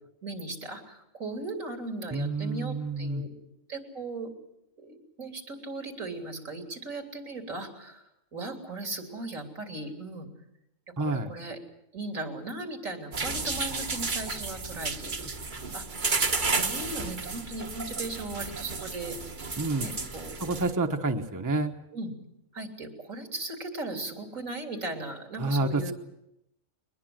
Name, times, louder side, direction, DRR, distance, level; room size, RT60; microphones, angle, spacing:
voice 1, 0.2-3.3 3.7-4.3 4.8-8.0 8.3-10.3 11.1-11.6 11.9-15.3 15.7-15.9 16.5-19.2 19.8-20.6 21.9-22.1 22.5-25.9, right 2 dB, 80° right, 4 dB, 3.8 m, -37 dB
voice 2, 2.1-3.2 11.0-11.3 19.6-19.9 20.4-21.7 25.4-25.9, right 2 dB, 15° right, 5 dB, 1.1 m, -28 dB
sound 1, 13.1-20.7, right 3 dB, 40° right, 1.3 m, -32 dB
22.5 x 21.0 x 7.7 m, 0.84 s
omnidirectional pair, 1.4 m